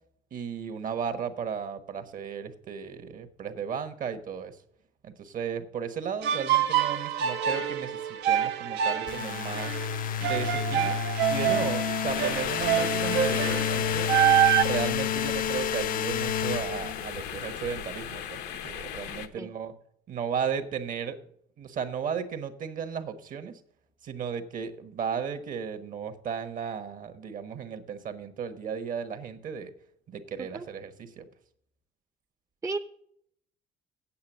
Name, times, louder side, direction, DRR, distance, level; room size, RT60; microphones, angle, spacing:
voice 1, 0.3-4.6 5.0-9.8 10.2-10.9 11.3-14.1 14.6-19.7 20.1-21.2 21.6-23.6 24.0-29.7 30.1-31.2, right 7 dB, 55° right, 9 dB, 1.3 m, -35 dB
sound 1, 6.2-14.6, right 10 dB, 85° right, 0.9 m, -26 dB
sound 2, 9.1-17.4, left 9 dB, 55° left, 0.5 m, -30 dB
sound 3, 12.1-19.3, left 9 dB, 85° left, 0.9 m, -38 dB
voice 2, 19.4-19.5 30.4-30.7 32.6-32.8, right 3 dB, 20° right, 7 dB, 0.6 m, -33 dB
8.6 x 7.7 x 7.4 m, 0.67 s
cardioid pair, 110°, 17 cm